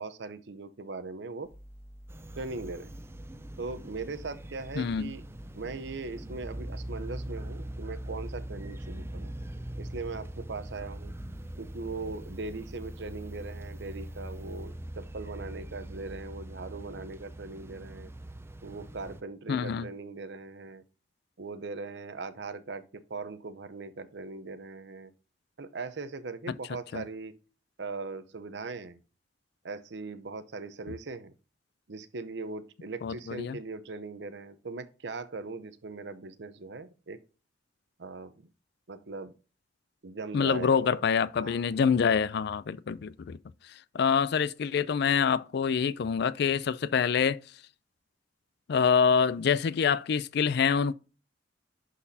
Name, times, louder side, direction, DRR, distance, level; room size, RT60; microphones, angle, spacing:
voice 1, 0.0-1.5 2.4-2.9 3.6-5.2 5.5-9.3 9.8-11.1 11.6-18.1 18.6-20.8 21.4-25.1 25.6-27.3 27.8-29.0 29.6-31.3 31.9-37.2 38.0-38.4 38.9-39.3 40.0-41.0 41.4-41.7, right 3 dB, 70° right, 0.7 m, -40 dB
sound 1, 1.4-16.2, equal, 15° left, 1.3 m, -50 dB
sound 2, 2.1-19.2, right 1 dB, 15° right, 0.4 m, -42 dB
voice 2, 4.8-5.1 19.5-19.9 26.9-27.0 33.0-33.6 40.3-43.4 43.9-47.4 48.7-50.9, left 6 dB, 65° left, 0.4 m, -26 dB
11.0 x 4.2 x 2.7 m
head